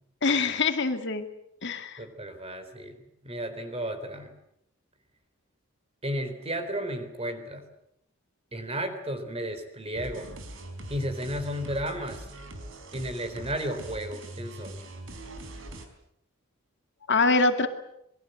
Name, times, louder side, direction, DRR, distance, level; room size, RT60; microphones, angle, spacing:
voice 1, 0.2-1.3 1.6-2.0 17.1-17.7, left 3 dB, 55° left, 7 dB, 2.2 m, -24 dB
voice 2, 2.0-4.3 6.0-7.6 8.5-10.3 10.9-12.3 12.9-14.8, equal, 30° right, 9 dB, 3.9 m, -33 dB
sound 1, 9.9-15.9, right 1 dB, 65° right, 4.4 m, -42 dB
27.0 x 22.0 x 8.0 m, 0.76 s
head